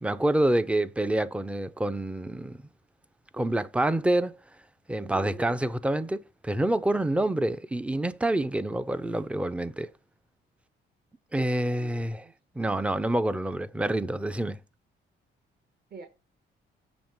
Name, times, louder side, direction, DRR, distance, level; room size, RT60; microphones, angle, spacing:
voice 1, 0.0-2.6 3.3-4.4 4.9-9.9 11.3-12.2 12.6-14.6, right 1 dB, 5° right, 0.5 m, -27 dB
voice 2, 4.9-5.6 11.8-12.3 15.9-16.1, right 4 dB, 50° right, 1.3 m, -45 dB
7.2 x 2.9 x 5.8 m
cardioid pair, 90°, 20 cm